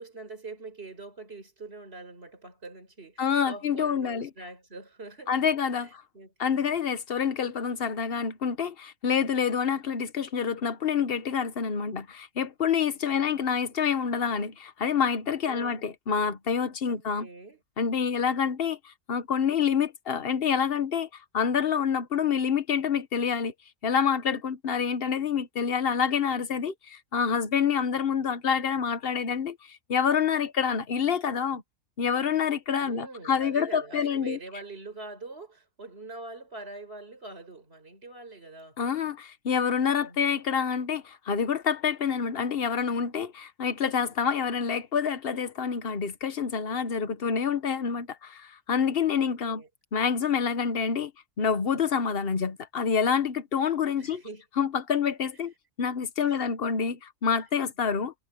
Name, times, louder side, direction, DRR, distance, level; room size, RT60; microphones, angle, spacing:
voice 1, 0.0-5.5 5.8-6.7 13.1-13.4 15.4-15.9 16.9-17.6 32.8-38.8 39.9-40.4 49.1-49.7 53.9-54.4 56.2-56.4, right 3 dB, 40° right, 5.2 m, -44 dB
voice 2, 3.2-4.3 5.3-5.9 6.4-17.3 17.8-23.5 23.8-31.6 32.0-34.4 38.8-49.6 49.9-51.1 51.4-54.2 54.6-55.5 55.8-58.1, left 7 dB, 45° left, 1.1 m, -27 dB
omnidirectional pair, 1.5 m